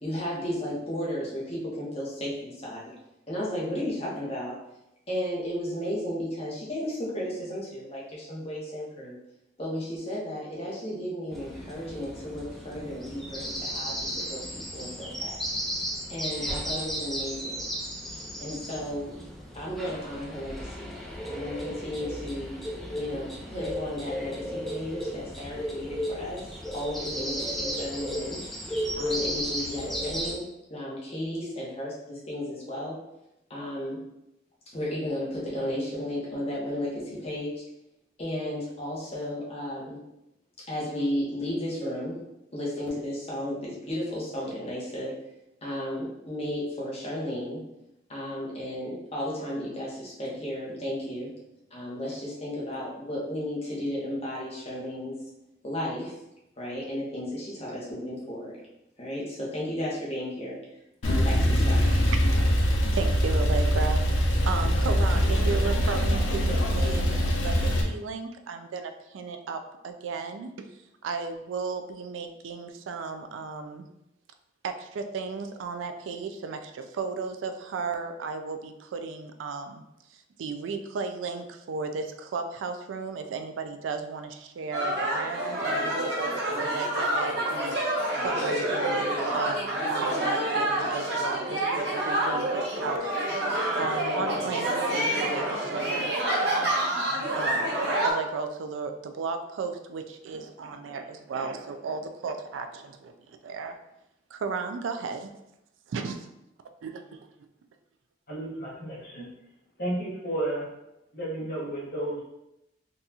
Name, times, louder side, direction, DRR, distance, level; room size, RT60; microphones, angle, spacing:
voice 1, 0.0-2.9 3.3-4.6 5.1-9.2 9.6-15.4 16.1-17.6 18.4-19.2 19.5-21.0 21.3-22.5 22.9-26.4 26.7-28.4 28.9-33.0 33.5-34.0 34.7-37.6 38.2-40.0 40.6-42.2 42.5-45.1 45.6-47.6 48.1-51.3 51.7-55.1 55.6-56.1 56.6-58.6 59.0-60.6 61.0-61.9, left 1 dB, 30° left, -5 dB, 1.0 m, -34 dB
sound 1, 11.3-30.4, equal, ahead, 0.4 m, -34 dB
Male speech man speaking / Car / Idling, 61.0-67.8, equal, 90° left, 0.6 m, -23 dB
voice 2, 61.7-62.6 62.8-64.0 64.5-70.7 71.0-73.9 74.6-79.8 80.1-93.1 93.4-97.0 97.3-97.7 98.0-103.7 104.3-105.3 105.9-106.3 106.8-107.0, right 4 dB, 85° right, 7 dB, 0.3 m, -35 dB
sound 2, 84.7-98.1, right 1 dB, 60° right, 0.9 m, -27 dB
voice 3, 108.3-109.3 109.8-110.7 111.1-112.2, right 1 dB, 50° left, -6 dB, 1.2 m, -32 dB
3.9 x 2.3 x 2.8 m, 0.87 s
head